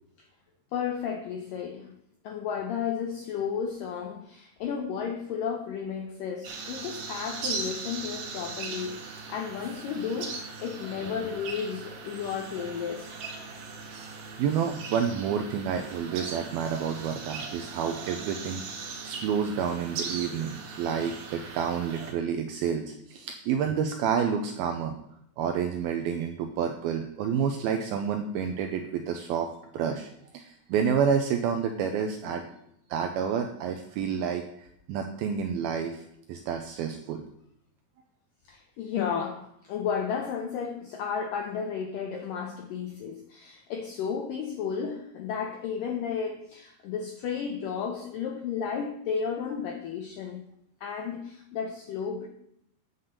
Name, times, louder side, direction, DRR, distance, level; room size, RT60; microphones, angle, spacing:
voice 1, 0.7-1.9 2.2-13.2 32.2-32.5 38.5-50.4 50.8-52.3, left 7 dB, 80° left, 1.9 m, -33 dB
sound 1, 6.4-22.1, right 4 dB, 65° right, 3.1 m, -39 dB
voice 2, 14.4-18.6 19.0-24.9 25.4-29.5 29.7-30.1 30.3-32.4 32.9-36.0 36.3-37.2, right 7 dB, 85° right, 2.2 m, -29 dB
9.4 x 5.8 x 6.5 m
omnidirectional pair, 5.0 m